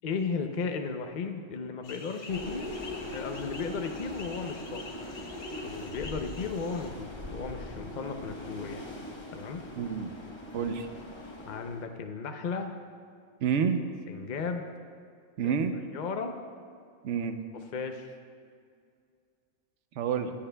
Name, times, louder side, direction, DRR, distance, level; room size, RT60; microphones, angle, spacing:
voice 1, 0.0-2.7 3.1-4.8 5.6-8.9 9.3-9.6 11.4-12.8 14.1-14.6 15.4-15.5 15.9-16.4 17.5-18.2, left 5 dB, 50° left, 5 dB, 0.5 m, -35 dB
sound 1, 1.8-6.9, left 3 dB, 85° left, 1.5 m, -47 dB
sound 2, 2.3-11.9, left 1 dB, 25° left, 0.8 m, -41 dB
voice 2, 9.8-10.1 10.5-10.9 13.4-13.8 15.4-15.7 17.0-17.4 20.0-20.3, right 6 dB, 65° right, 8 dB, 0.9 m, -28 dB
23.0 x 8.7 x 2.2 m, 2.3 s
omnidirectional pair, 1.4 m